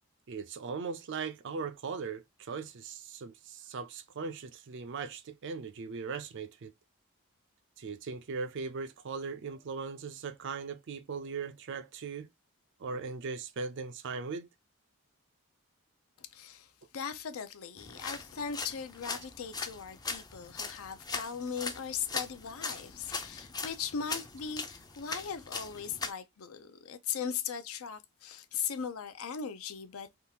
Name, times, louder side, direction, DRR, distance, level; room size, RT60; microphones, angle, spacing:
voice 1, 0.3-6.7 7.8-12.3 12.8-14.5, right 5 dB, 55° right, 0.4 m, -39 dB
voice 2, 16.2-30.2, left 7 dB, 70° left, 0.5 m, -39 dB
sound 1, 17.8-26.1, left 4 dB, 15° left, 0.4 m, -40 dB
3.5 x 2.4 x 2.8 m
head